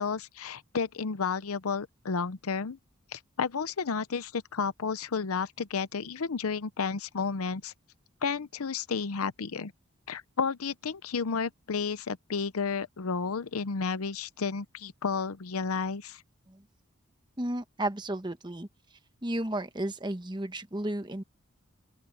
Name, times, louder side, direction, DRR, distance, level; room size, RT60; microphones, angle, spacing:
voice 1, 0.0-2.8 3.1-7.7 8.2-9.7 10.1-16.2, left 5 dB, 90° left, 0.7 m, -32 dB
voice 2, 17.4-18.7 19.2-21.2, right 1 dB, 20° right, 1.1 m, -33 dB
open air
head